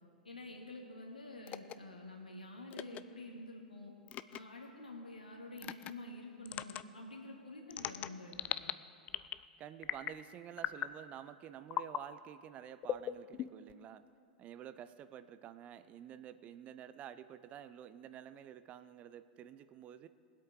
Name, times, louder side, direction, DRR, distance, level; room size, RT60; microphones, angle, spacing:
voice 1, 0.2-3.9 4.3-8.7, left 2 dB, 80° left, 0 dB, 2.1 m, -48 dB
sound 1, 1.5-1.7 2.7-3.0 4.1-4.4 5.6-5.9 6.5-6.8 7.7-8.7 9.1-9.5 9.8-10.2 10.6-10.9 11.7-12.0 12.8-13.7, left 12 dB, 30° left, 0.4 m, -39 dB
voice 2, 9.6-14.0 14.4-20.1, right 10 dB, 30° right, 13 dB, 0.5 m, -50 dB
22.0 x 8.4 x 3.8 m, 2.3 s
figure-of-eight pair, 95°, 4 cm